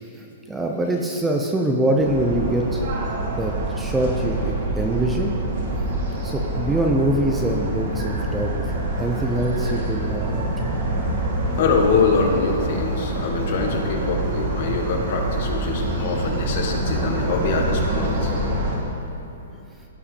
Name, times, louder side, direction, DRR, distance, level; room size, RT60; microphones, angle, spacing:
voice 1, 0.5-2.8 3.4-5.4 6.2-10.7, right 1 dB, 5° right, 1 dB, 0.5 m, -24 dB
sound 1, 2.0-18.8, right 2 dB, 50° right, 2.3 m, -26 dB
voice 2, 11.6-18.3, left 4 dB, 45° left, 2 dB, 1.4 m, -24 dB
17.0 x 5.7 x 4.2 m, 2.8 s
hypercardioid pair, 170°, 0 cm